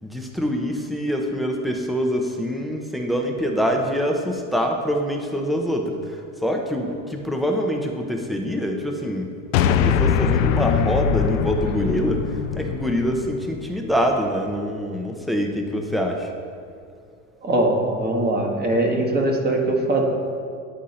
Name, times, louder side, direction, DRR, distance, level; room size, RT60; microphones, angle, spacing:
voice 1, 0.0-9.3 9.6-12.2 12.6-16.3, equal, ahead, 2 dB, 0.8 m, -25 dB
sound 1, 9.5-14.0, left 7 dB, 85° left, 0.5 m, -22 dB
voice 2, 17.4-20.0, right 1 dB, 25° right, 0 dB, 1.3 m, -21 dB
10.0 x 3.7 x 4.2 m, 2.2 s
hypercardioid pair, 90°, 37 cm